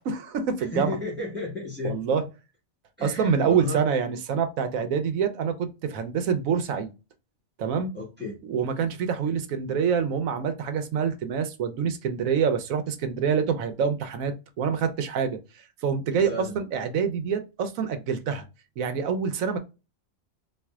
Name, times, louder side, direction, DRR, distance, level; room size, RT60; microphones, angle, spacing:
voice 1, 0.0-1.0 1.8-2.2 3.0-6.9 7.6-7.9 8.5-15.4 15.8-18.5 18.8-19.6, right 6 dB, 80° right, 1.1 m, -26 dB
voice 2, 0.6-2.0 3.0-3.8 7.9-8.4 16.1-16.6, left 3 dB, 10° right, 1.5 m, -33 dB
4.3 x 2.6 x 2.3 m
omnidirectional pair, 1.4 m